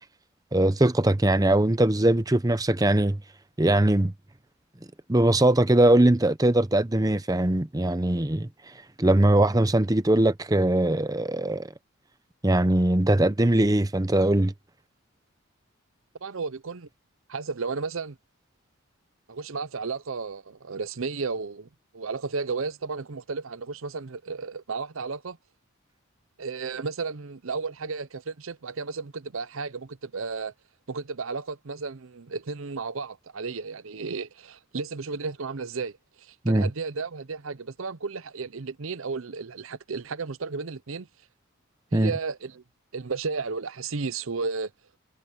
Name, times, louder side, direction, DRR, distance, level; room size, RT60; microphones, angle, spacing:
voice 1, 0.5-3.2 3.6-4.1 5.1-8.5 9.0-11.7 12.4-14.5 36.4-36.7 41.9-42.1, right 1 dB, 15° right, 0.7 m, -21 dB
voice 2, 16.2-16.9 17.3-18.2 19.3-25.4 26.4-30.5 30.9-41.1 41.9-42.6 42.9-44.7, right 4 dB, 70° right, 0.7 m, -33 dB
head